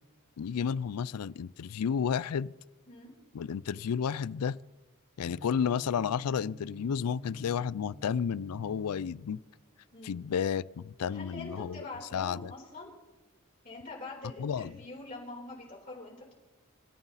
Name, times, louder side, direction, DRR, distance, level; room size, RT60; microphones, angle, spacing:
voice 1, 0.4-2.5 3.3-4.6 5.2-9.4 10.0-11.9 12.1-12.5 14.4-14.7, left 7 dB, 90° left, 0.4 m, -32 dB
Gong, 5.2-13.2, right 1 dB, 70° right, 3.7 m, -52 dB
voice 2, 11.1-12.9 13.6-16.3, left 2 dB, 40° left, 4.1 m, -44 dB
26.0 x 13.0 x 4.1 m
head